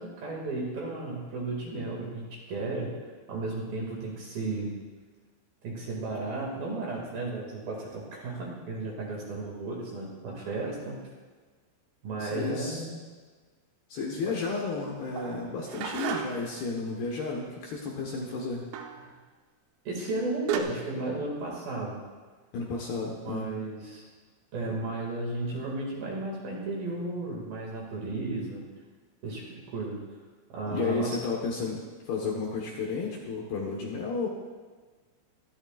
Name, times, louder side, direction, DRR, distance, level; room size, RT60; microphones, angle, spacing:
voice 1, 0.0-3.0 3.3-4.7 5.6-11.0 12.0-12.9 14.3-14.4 19.0-19.1 19.9-22.0 23.2-24.1 24.5-28.6 29.2-30.0 30.5-31.2, right 2 dB, 55° right, -2 dB, 3.5 m, -34 dB
voice 2, 12.2-12.9 13.9-18.7 22.5-23.5 30.7-34.3, left 4 dB, 65° left, -2 dB, 2.7 m, -32 dB
sound 1, 15.2-16.6 18.7-19.0 20.0-20.1 20.5-20.6, right 8 dB, 90° right, 3.7 m, -33 dB
24.5 x 11.5 x 2.5 m, 1.4 s
omnidirectional pair, 5.8 m